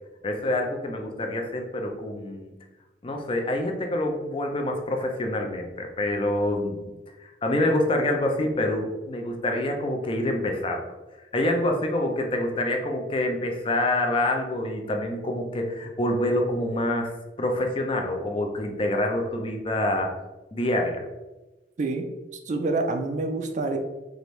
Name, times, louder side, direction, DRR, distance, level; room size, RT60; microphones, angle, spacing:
voice 1, 0.2-2.5 3.0-6.9 7.2-10.8 11.3-17.1 17.4-20.1 20.5-21.0, left 1 dB, 30° left, 2 dB, 0.5 m, -26 dB
voice 2, 21.8-23.8, right 3 dB, 45° right, 6 dB, 0.4 m, -27 dB
4.9 x 2.6 x 3.1 m, 1.1 s
head